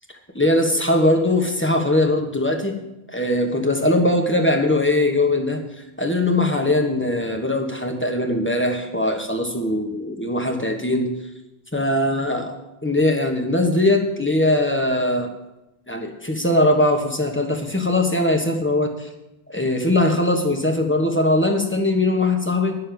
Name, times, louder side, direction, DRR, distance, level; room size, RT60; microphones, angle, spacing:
voice 1, 0.3-2.8 3.1-5.6 6.0-11.1 11.7-12.5 12.8-15.3 15.9-19.1 19.5-22.8, left 1 dB, 10° left, 2 dB, 1.4 m, -20 dB
11.0 x 6.6 x 7.7 m, 0.94 s
omnidirectional pair, 1.1 m